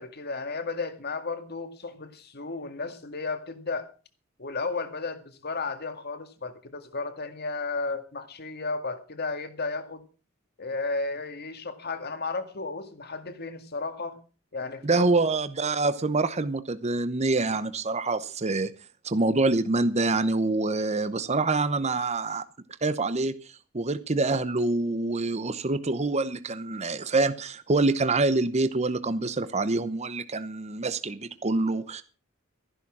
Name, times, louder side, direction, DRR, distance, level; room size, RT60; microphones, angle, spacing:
voice 1, 0.0-3.9 4.4-10.0 10.6-14.2 14.5-15.1, left 3 dB, 50° left, 1.9 m, -33 dB
voice 2, 14.8-18.7 19.0-22.4 22.8-23.3 23.7-32.0, right 3 dB, 35° right, 0.8 m, -26 dB
14.0 x 11.5 x 6.1 m
head